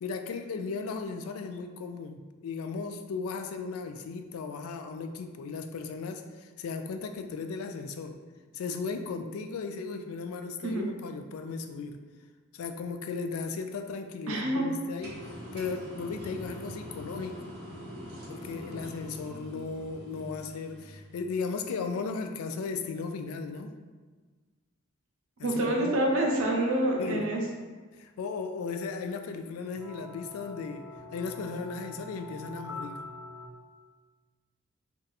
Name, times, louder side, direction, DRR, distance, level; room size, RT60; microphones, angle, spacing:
voice 1, 0.0-8.2 8.5-12.0 12.5-17.4 18.3-23.7 25.4-26.0 27.0-27.2 28.0-30.8 31.1-33.1, left 4 dB, 90° left, 7 dB, 0.3 m, -36 dB
voice 2, 14.3-14.6 25.4-27.4, right 1 dB, 80° right, 0 dB, 0.6 m, -27 dB
sound 1, 15.0-21.3, equal, 50° right, 0.8 m, -43 dB
sound 2, 29.8-33.5, left 2 dB, 10° right, 0.3 m, -44 dB
2.7 x 2.3 x 4.0 m, 1.4 s
head